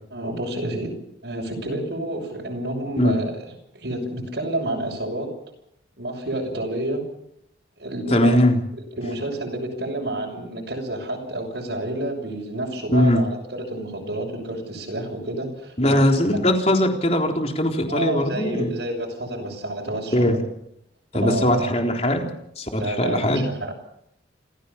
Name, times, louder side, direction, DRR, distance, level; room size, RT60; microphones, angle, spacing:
voice 1, 0.1-0.9 1.2-3.3 3.7-5.3 6.0-7.0 7.8-8.4 8.9-15.7 16.3-16.5 17.9-20.4 21.2-21.7 22.8-23.7, right 1 dB, 70° right, -2 dB, 6.3 m, -29 dB
voice 2, 8.1-8.6 12.9-13.2 15.8-18.7 20.1-20.4 21.1-22.2 22.6-23.4, left 1 dB, 35° left, 3 dB, 3.8 m, -20 dB
28.0 x 16.0 x 7.1 m, 0.75 s
head